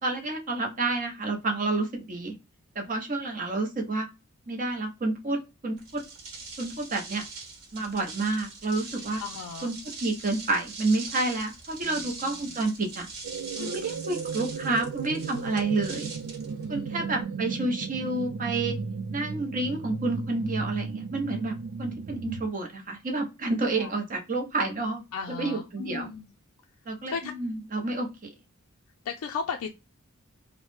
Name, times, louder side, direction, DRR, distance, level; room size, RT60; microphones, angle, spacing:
voice 1, 0.0-2.3 2.8-4.1 4.5-6.0 6.6-7.2 7.7-9.2 9.6-13.1 13.6-16.1 16.7-18.8 19.1-25.0 25.4-26.1 26.9-28.1, right 2 dB, 35° right, 3 dB, 0.6 m, -29 dB
sound 1, 5.8-17.2, right 4 dB, 60° right, 1.1 m, -42 dB
voice 2, 9.2-9.7 11.8-12.6 13.5-13.8 16.5-17.5 23.8-23.9 25.1-26.3 27.1-27.3 29.0-29.7, left 5 dB, 75° left, 2 dB, 0.4 m, -37 dB
sound 2, 13.2-22.4, right 5 dB, 85° right, 0.4 m, -35 dB
3.0 x 2.0 x 3.0 m, 0.26 s
head